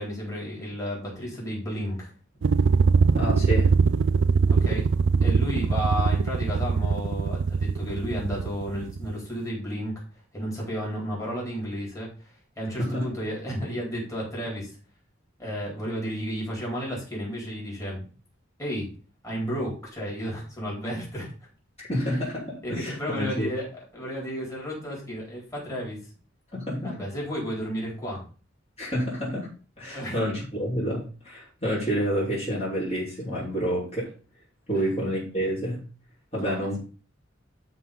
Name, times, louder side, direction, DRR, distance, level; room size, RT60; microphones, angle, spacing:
voice 1, 0.0-2.1 4.5-4.9 5.2-9.9 10.3-12.1 12.6-14.8 15.4-18.1 18.6-18.9 19.2-21.3 21.9-22.0 22.6-23.7 23.9-26.0 26.8-28.2 29.9-30.2 34.7-34.9 36.3-36.8, equal, 15° left, -4 dB, 4.4 m, -32 dB
sound 1, 2.4-9.1, right 5 dB, 65° right, 0.4 m, -22 dB
voice 2, 3.1-3.7 12.8-13.1 21.8-23.5 26.5-27.0 28.8-29.5 29.8-34.1 34.7-35.8 36.3-36.8, equal, 30° left, -6 dB, 4.0 m, -28 dB
12.0 x 4.1 x 5.4 m, 0.37 s
head